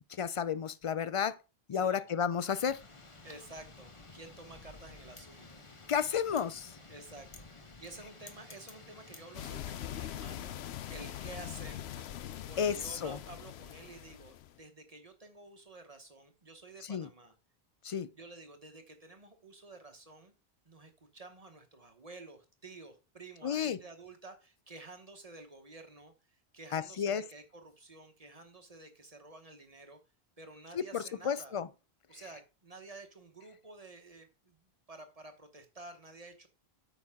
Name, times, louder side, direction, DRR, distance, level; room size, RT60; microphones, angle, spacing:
voice 1, 0.2-1.3 1.7-2.8 5.9-6.7 12.6-13.2 16.9-17.1 17.8-18.1 23.4-23.8 26.7-27.2 30.7-31.7, left 7 dB, 55° left, 0.3 m, -32 dB
voice 2, 1.7-2.0 3.2-5.6 6.9-12.0 12.5-17.4 18.1-20.3 20.6-30.0 30.4-31.6 32.1-36.5, right 2 dB, 35° right, 1.1 m, -51 dB
Wind, 2.3-10.4, left 3 dB, 30° left, 1.1 m, -53 dB
sound 1, 9.3-14.6, left 11 dB, 80° left, 0.9 m, -42 dB
8.8 x 6.1 x 3.6 m
omnidirectional pair, 1.1 m